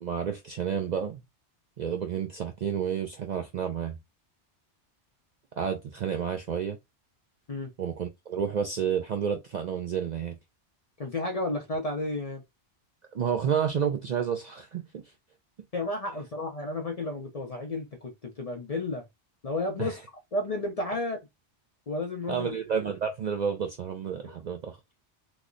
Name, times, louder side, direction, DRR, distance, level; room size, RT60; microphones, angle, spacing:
voice 1, 0.0-1.2 1.8-4.0 5.6-6.8 7.8-10.4 13.1-15.0 19.8-19.9 22.3-24.8, right 7 dB, 60° right, 0.4 m, -30 dB
voice 2, 11.0-12.4 15.7-19.0 19.4-20.0 20.3-21.2 21.9-22.5 24.2-24.4, left 2 dB, 40° left, 0.6 m, -32 dB
3.0 x 2.0 x 3.7 m
omnidirectional pair, 1.2 m